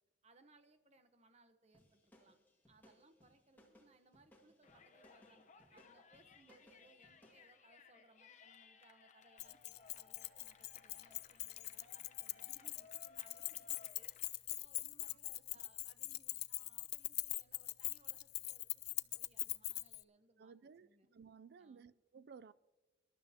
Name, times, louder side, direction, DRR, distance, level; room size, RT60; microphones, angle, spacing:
voice 1, 0.2-2.4 2.7-21.1 21.6-22.0, right 3 dB, 40° right, 1.0 m, -69 dB
sound 1, 1.7-7.5, equal, 10° left, 2.1 m, -67 dB
Yell, 4.6-14.3, left 5 dB, 45° left, 0.9 m, -63 dB
Keys jangling, 9.4-20.0, left 20 dB, 60° left, 0.3 m, -42 dB
voice 2, 20.4-22.5, right 6 dB, 60° right, 0.4 m, -57 dB
24.5 x 12.0 x 2.9 m
head